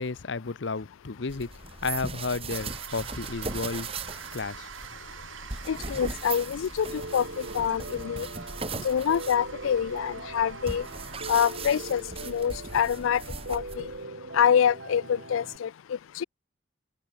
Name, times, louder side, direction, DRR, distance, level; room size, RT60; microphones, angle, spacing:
voice 1, 0.0-3.9 4.3-4.7 5.1-5.2, left 4 dB, 65° left, 0.8 m, -33 dB
sound 1, 1.3-14.0, right 4 dB, 30° right, 2.7 m, -39 dB
sound 2, 2.5-12.1, right 7 dB, 85° right, 1.5 m, -46 dB
voice 2, 5.7-8.3 8.8-10.9 11.3-13.2 13.5-13.9 14.3-15.7 16.2-16.3, left 8 dB, 85° left, 0.4 m, -26 dB
Piano, 6.8-15.6, right 2 dB, 65° right, 2.4 m, -41 dB
head